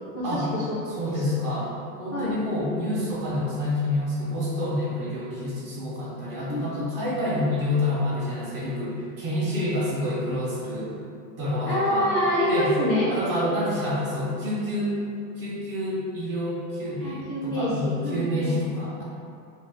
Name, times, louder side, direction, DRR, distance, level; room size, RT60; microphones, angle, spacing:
voice 1, 0.1-0.8 1.1-1.2 2.1-2.3 6.5-6.6 7.0-7.4 11.7-13.1 17.0-18.6, equal, 30° left, -9 dB, 0.4 m, -26 dB
voice 2, 1.0-1.7 2.0-10.9 11.4-12.1 12.5-12.8 13.1-15.0 15.4-19.0, left 1 dB, 25° right, -8 dB, 0.5 m, -28 dB
2.5 x 2.4 x 3.2 m, 2.5 s
hypercardioid pair, 130°, 48 cm